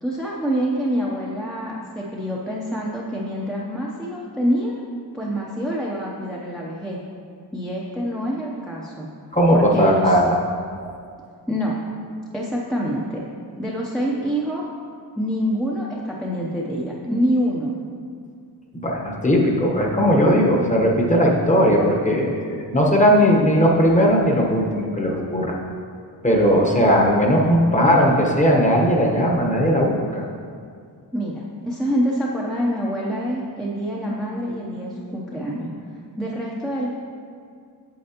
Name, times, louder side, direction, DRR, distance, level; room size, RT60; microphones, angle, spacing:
voice 1, 0.0-4.8 5.1-7.0 7.5-9.1 9.5-10.2 11.5-11.8 12.3-13.2 13.6-14.7 15.1-17.8 31.1-35.7 36.2-36.9, equal, ahead, -5 dB, 0.7 m, -26 dB
voice 2, 9.3-10.2 18.7-25.6 26.2-30.2, equal, 15° left, -1 dB, 1.0 m, -18 dB
8.6 x 7.5 x 2.9 m, 2.2 s
wide cardioid pair, 120°, 42 cm